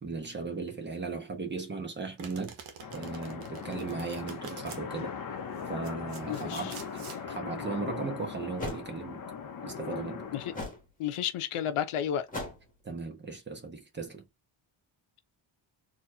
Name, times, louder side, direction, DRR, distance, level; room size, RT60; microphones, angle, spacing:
voice 1, 0.0-2.5 2.9-5.1 5.7-7.0 7.3-9.2 9.6-10.2 12.8-14.2, right 4 dB, 20° right, 1.1 m, -37 dB
Domestic sounds home sounds, 2.2-4.8 5.6-7.2, right 6 dB, 75° right, 1.4 m, -47 dB
sound 1, 2.8-10.6, left 6 dB, 40° left, 0.8 m, -39 dB
voice 2, 6.3-6.7 10.3-10.5 11.0-12.3, left 9 dB, 80° left, 0.9 m, -32 dB
sound 2, 7.7-7.8 8.6-8.9 10.5-10.9 12.3-12.7, left 2 dB, 15° left, 1.6 m, -37 dB
4.3 x 3.0 x 2.7 m
cardioid pair, 165°, 50 cm